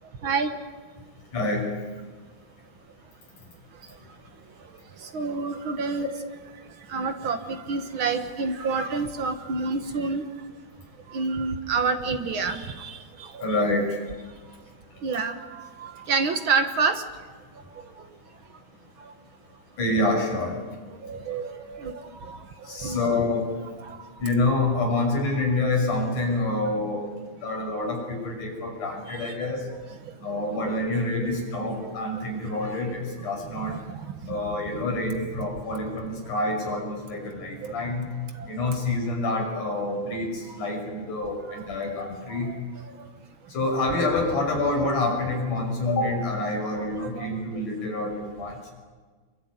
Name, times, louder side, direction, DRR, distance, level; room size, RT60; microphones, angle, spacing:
voice 1, 0.2-0.6 5.0-6.1 6.9-10.2 11.1-13.5 15.0-17.0 17.7-17.8 19.0-19.1 21.0-22.4 22.7-23.2 23.8-24.1 28.8-29.4 30.0-30.1 30.6-31.1 31.8-31.9 33.4-34.4 37.6-37.7 38.3-38.5 40.5-40.6 41.5-41.9 42.3-42.5 42.8-42.9 46.9-47.3, right 4 dB, 65° right, 7 dB, 1.2 m, -29 dB
voice 2, 1.3-1.7 13.4-14.0 19.8-20.6 22.6-23.5 24.2-27.1 27.4-29.7 30.2-33.8 34.3-38.1 38.5-42.5 43.5-48.6, left 2 dB, 50° left, 2 dB, 7.3 m, -27 dB
27.0 x 23.0 x 9.5 m, 1.4 s
omnidirectional pair, 4.5 m